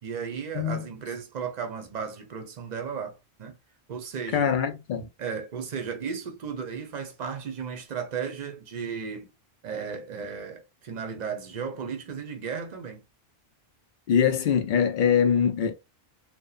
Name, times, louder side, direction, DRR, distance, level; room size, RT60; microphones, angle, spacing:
voice 1, 0.0-3.6 3.9-4.5 5.2-9.3 9.6-13.0, right 6 dB, 50° right, 0.6 m, -35 dB
voice 2, 4.3-5.1 14.1-15.7, left 7 dB, 60° left, 0.6 m, -23 dB
2.8 x 2.1 x 2.3 m
omnidirectional pair, 1.1 m